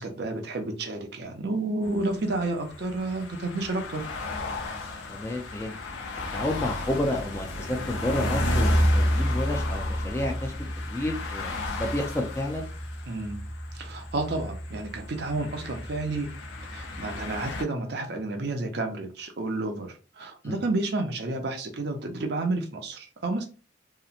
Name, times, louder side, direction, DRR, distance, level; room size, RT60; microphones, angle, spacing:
voice 1, 0.0-4.0 13.1-13.4 13.7-16.3 16.7-23.4, right 2 dB, 60° right, 0.5 m, -30 dB
sound 1, 1.8-17.6, left 1 dB, 75° left, 0.6 m, -31 dB
voice 2, 5.1-5.8 6.3-10.5 10.9-12.7 20.4-20.6, left 1 dB, 15° left, 0.4 m, -30 dB
2.8 x 2.0 x 2.4 m
head